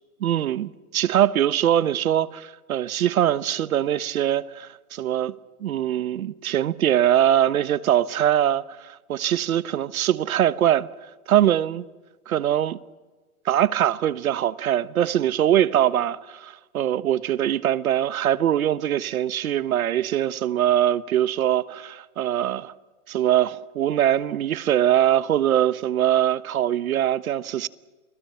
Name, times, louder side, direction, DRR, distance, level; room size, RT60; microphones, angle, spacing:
voice 1, 0.2-10.9 11.3-11.8 12.3-12.8 13.4-22.7 23.1-27.7, right 11 dB, 70° right, 1.2 m, -22 dB
29.0 x 20.0 x 5.7 m
hypercardioid pair, 140°, 44 cm